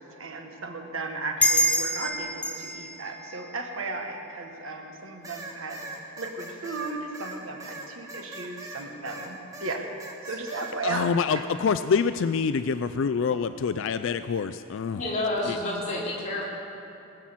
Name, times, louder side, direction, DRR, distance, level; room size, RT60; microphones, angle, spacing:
voice 1, 0.0-5.9 6.2-9.9 10.2-11.4, right 3 dB, 65° right, 3 dB, 1.5 m, -35 dB
sound 1, 1.4-4.5, equal, 5° left, 0.8 m, -28 dB
sound 2, 5.2-9.3 9.5-10.7, right 2 dB, 15° right, 1.4 m, -40 dB
voice 2, 10.8-15.0 15.5-15.6, left 6 dB, 60° left, 12 dB, 0.3 m, -26 dB
voice 3, 14.9-16.4, left 2 dB, 35° left, -5 dB, 3.1 m, -29 dB
20.5 x 7.6 x 7.3 m, 2.8 s
head